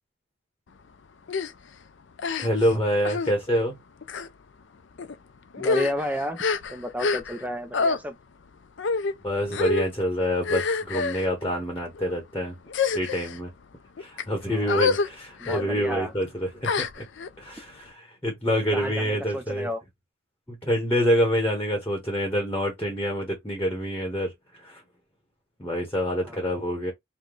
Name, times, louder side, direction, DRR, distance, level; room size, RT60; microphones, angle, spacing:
sound 1, 1.3-1.5 2.2-2.7 3.0-3.3 4.0-4.3 5.0-5.2 5.5-7.5 7.7-8.0 8.8-9.1 9.5-9.9 10.4-11.3 11.9-12.2 12.7-13.4 14.0-14.2 14.7-15.1 15.4-15.6 16.6-17.3, left 4 dB, 55° left, 0.4 m, -27 dB
voice 1, 2.4-3.7 9.2-12.6 12.9-13.5 14.0-17.0 17.4-19.7 20.5-24.3 24.6-24.8 25.6-26.9, equal, 10° left, 1.0 m, -26 dB
voice 2, 5.6-6.4 6.7-8.1 14.5-14.9 15.4-16.1 18.7-19.8 26.2-26.4, equal, 5° right, 0.4 m, -32 dB
4.9 x 2.2 x 3.7 m
head